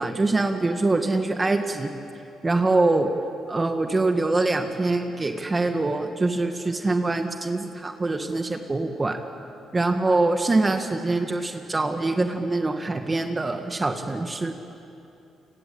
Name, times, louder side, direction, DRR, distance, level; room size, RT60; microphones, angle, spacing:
voice 1, 0.0-1.9 2.4-3.1 3.5-9.2 9.7-14.5, right 2 dB, 25° right, 5 dB, 1.8 m, -24 dB
29.0 x 24.0 x 8.7 m, 2.8 s
cardioid pair, 90°, 0 cm